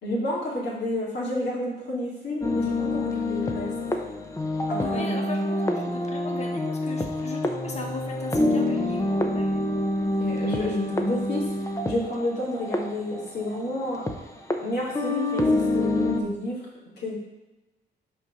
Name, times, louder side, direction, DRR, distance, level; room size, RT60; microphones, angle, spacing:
voice 1, 0.0-3.7 4.7-5.4 10.2-11.5 11.8-14.0 14.6-16.7 17.0-17.1, left 1 dB, 55° left, -4 dB, 2.4 m, -30 dB
sound 1, 2.4-14.2 14.5-14.6 14.9-16.2, left 1 dB, 15° left, 0.7 m, -27 dB
voice 2, 4.8-9.5, left 3 dB, 35° left, 2 dB, 1.3 m, -38 dB
5.6 x 3.8 x 5.9 m, 1.1 s
cardioid pair, 90°, 20 cm